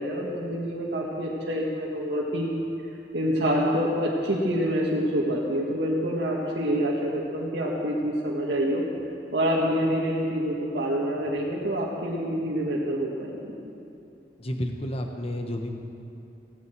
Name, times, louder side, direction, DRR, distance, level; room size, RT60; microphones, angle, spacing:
voice 1, 0.0-2.5 3.1-8.8 9.3-13.5, equal, 90° right, -5 dB, 1.9 m, -26 dB
voice 2, 14.4-15.7, left 1 dB, 35° left, 4 dB, 1.1 m, -31 dB
17.0 x 17.0 x 4.7 m, 2.8 s
head